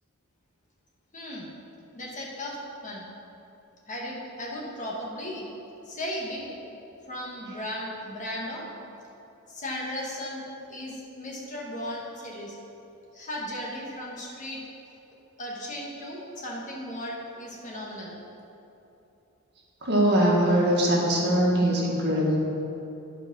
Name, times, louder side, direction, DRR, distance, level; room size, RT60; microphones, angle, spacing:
voice 1, 1.1-1.5 1.9-2.6 2.8-3.1 3.9-5.5 5.9-6.6 7.1-8.7 9.5-10.4 10.7-12.5 13.1-14.6 15.4-18.1, left 1 dB, 35° left, -4 dB, 1.7 m, -36 dB
voice 2, 19.8-22.4, equal, 50° right, -3 dB, 1.6 m, -22 dB
11.0 x 4.9 x 6.2 m, 3.0 s
head